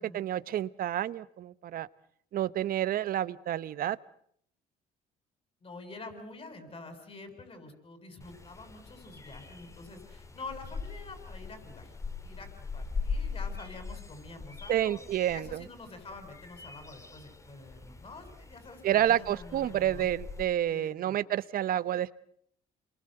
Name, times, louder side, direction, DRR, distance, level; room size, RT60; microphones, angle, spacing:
voice 1, 0.0-1.9 2.3-4.0 14.7-15.6 18.8-22.1, right 12 dB, 60° right, 17 dB, 1.1 m, -29 dB
voice 2, 5.6-11.9 12.2-15.0 15.3-20.1 20.7-21.2, left 3 dB, 35° left, 8 dB, 7.9 m, -47 dB
sound 1, 8.2-20.5, left 4 dB, 15° left, 2.5 m, -41 dB
28.5 x 23.5 x 8.0 m, 0.67 s
cardioid pair, 110°, 17 cm